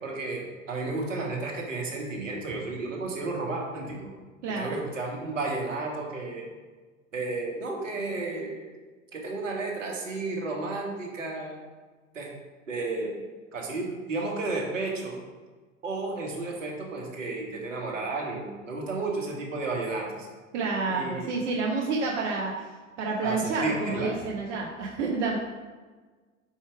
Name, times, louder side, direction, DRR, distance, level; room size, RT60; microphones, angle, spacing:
voice 1, 0.0-4.1 4.6-6.4 7.1-8.7 9.1-11.6 12.1-12.3 12.7-13.1 13.5-15.2 15.8-20.3 20.9-21.3 23.2-24.2, right 3 dB, 85° right, 0 dB, 1.3 m, -32 dB
voice 2, 4.4-4.8 20.5-22.7 23.0-25.4, right 3 dB, 70° right, -1 dB, 0.9 m, -29 dB
4.7 x 4.4 x 4.6 m, 1.3 s
hypercardioid pair, 75°, 37 cm